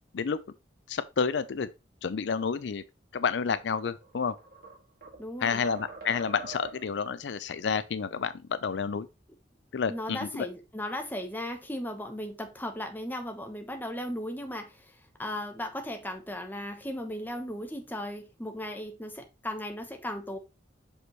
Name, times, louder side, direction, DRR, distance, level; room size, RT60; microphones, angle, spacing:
voice 1, 0.9-1.7 2.0-2.8 3.1-4.3 5.4-9.1 9.7-10.5, left 6 dB, 75° left, 0.4 m, -30 dB
sound 1, 4.0-5.3 5.6-7.0, right 4 dB, 55° right, 2.5 m, -44 dB
voice 2, 5.2-5.6 9.9-20.4, left 1 dB, 10° left, 1.1 m, -36 dB
6.2 x 5.2 x 3.1 m
head